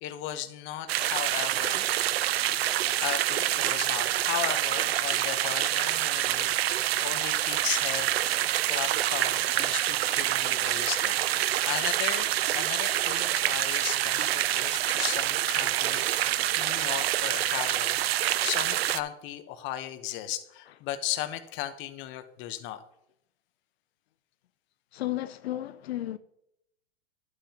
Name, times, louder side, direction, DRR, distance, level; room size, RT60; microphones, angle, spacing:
voice 1, 0.0-1.9 3.0-8.1 8.6-22.8, left 12 dB, 40° left, 1.1 m, -36 dB
sound 1, 0.9-19.0, right 13 dB, 75° right, 0.6 m, -27 dB
voice 2, 24.9-26.2, left 14 dB, 80° left, 0.6 m, -33 dB
11.0 x 9.1 x 2.9 m
hypercardioid pair, 125°, 31 cm